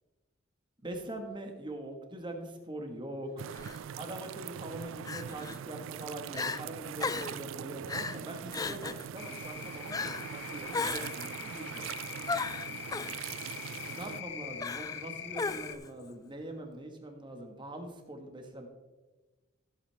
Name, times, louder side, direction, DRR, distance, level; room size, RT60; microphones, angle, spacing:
voice 1, 0.8-3.3 4.0-11.9 13.9-18.7, right 1 dB, 25° right, 4 dB, 1.5 m, -43 dB
sound 1, 3.4-14.2, right 9 dB, 70° right, 0.3 m, -42 dB
Crying sobbing, 3.5-3.8 5.0-5.6 6.0-6.1 6.3-6.6 7.0-7.4 7.9-8.2 8.5-9.0 9.9-10.3 10.7-11.3 12.3-13.1 14.6-15.0 15.3-15.9, left 4 dB, 20° left, 0.3 m, -35 dB
sound 2, 9.2-15.8, left 8 dB, 60° left, 0.8 m, -43 dB
15.5 x 8.3 x 3.4 m, 1.2 s
head